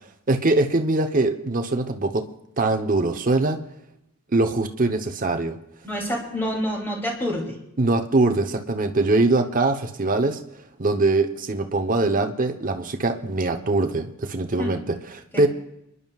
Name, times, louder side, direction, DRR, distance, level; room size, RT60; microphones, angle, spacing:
voice 1, 0.3-2.3 2.6-3.6 4.3-5.6 7.8-10.4 10.8-15.5, right 2 dB, 35° right, 6 dB, 0.9 m, -22 dB
voice 2, 5.8-7.6 14.6-14.7 15.3-15.5, equal, 10° left, -1 dB, 3.0 m, -27 dB
29.0 x 11.0 x 2.4 m, 0.83 s
head